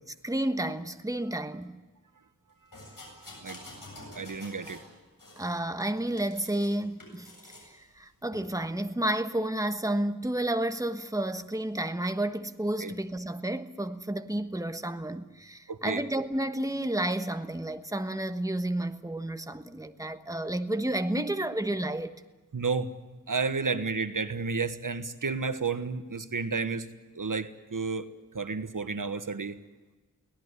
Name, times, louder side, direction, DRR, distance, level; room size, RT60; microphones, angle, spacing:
voice 1, 0.2-1.8 5.4-7.3 7.7-22.2, right 1 dB, 10° right, 1.3 m, -31 dB
sound 1, 2.7-4.9 5.2-6.7 7.0-7.7 8.3-8.5, left 1 dB, 90° left, 7.9 m, -48 dB
voice 2, 4.1-4.8 12.8-12.9 15.7-16.0 21.2-21.3 22.5-22.9 23.3-26.9 27.1-28.1 28.3-29.6, right 4 dB, 75° right, 1.4 m, -31 dB
23.5 x 18.0 x 9.7 m
wide cardioid pair, 65°, 32 cm